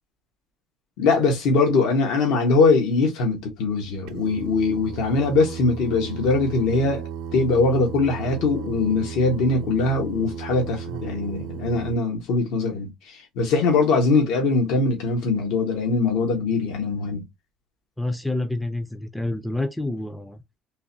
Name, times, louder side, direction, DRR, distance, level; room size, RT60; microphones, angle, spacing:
voice 1, 1.0-17.2, left 3 dB, 75° left, 1.3 m, -22 dB
Singing, 4.1-12.0, right 7 dB, 85° right, 0.6 m, -35 dB
voice 2, 18.0-20.4, left 2 dB, 5° left, 0.4 m, -28 dB
3.8 x 2.9 x 2.7 m
cardioid pair, 140°, 0 cm